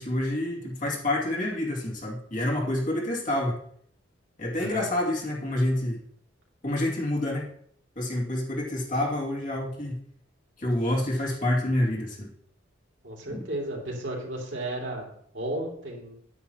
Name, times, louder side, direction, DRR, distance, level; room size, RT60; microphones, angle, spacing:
voice 1, 0.0-3.6 4.4-6.0 6.6-7.5 8.0-10.0 10.6-12.3 13.3-13.5, left 1 dB, 45° left, -3 dB, 2.5 m, -28 dB
voice 2, 4.6-4.9 13.0-16.2, right 1 dB, 70° right, -2 dB, 2.9 m, -34 dB
9.7 x 9.5 x 3.0 m, 0.64 s
head